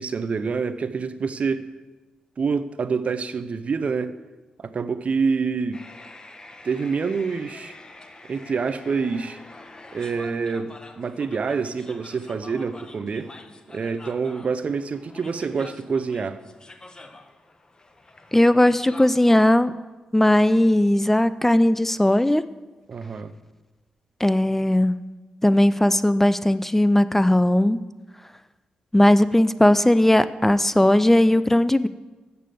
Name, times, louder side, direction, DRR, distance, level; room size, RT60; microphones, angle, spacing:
voice 1, 0.0-1.7 2.4-4.2 4.6-5.8 6.6-7.7 8.2-9.4 9.9-13.3 13.7-16.4 22.9-23.3, right 5 dB, 50° right, 0.6 m, -27 dB
sound 1, 5.7-19.6, left 2 dB, 30° left, 1.0 m, -46 dB
voice 2, 18.3-19.7 20.1-22.4 24.2-25.0 25.4-27.8 28.9-31.9, left 1 dB, 10° left, 0.4 m, -18 dB
8.2 x 6.8 x 7.6 m
cardioid pair, 60°, 3 cm